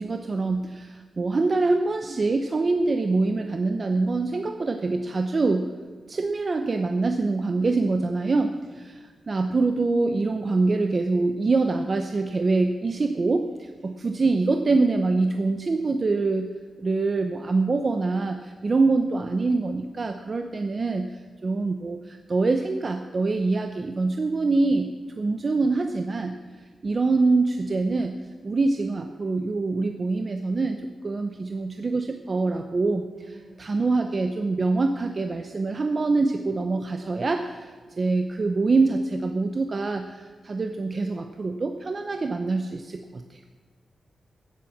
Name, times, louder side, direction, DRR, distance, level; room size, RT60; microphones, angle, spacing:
voice 1, 0.0-5.7 6.1-8.5 8.8-16.5 16.8-21.1 21.4-24.9 25.2-26.3 26.8-28.1 28.4-30.8 31.0-33.1 33.6-43.4, right 3 dB, 35° right, 6 dB, 0.7 m, -24 dB
voice 2, 8.3-8.8 9.1-9.4 13.8-14.0 33.1-33.7 37.7-38.1, right 1 dB, 65° right, -1 dB, 3.8 m, -53 dB
16.0 x 7.5 x 7.4 m, 1.4 s
wide cardioid pair, 145°, 0 cm